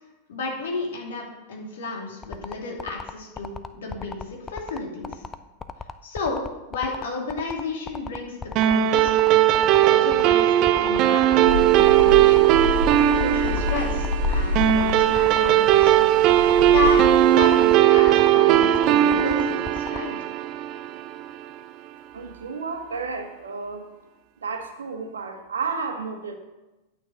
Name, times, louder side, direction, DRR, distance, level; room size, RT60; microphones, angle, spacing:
voice 1, 0.3-5.2 6.0-6.4 6.7-9.2 9.6-12.5 13.1-16.0 16.6-20.2, left 3 dB, 60° left, 0 dB, 2.6 m, -32 dB
sound 1, 2.2-20.0, left 5 dB, 15° left, 0.6 m, -36 dB
sound 2, 8.6-21.3, right 12 dB, 40° right, 0.5 m, -18 dB
sound 3, 11.4-17.7, left 3 dB, 90° left, 3.4 m, -29 dB
voice 2, 22.1-23.9 24.4-26.4, right 4 dB, 70° right, 5 dB, 1.5 m, -32 dB
9.4 x 6.4 x 6.9 m, 1.1 s
figure-of-eight pair, 90°, 0 cm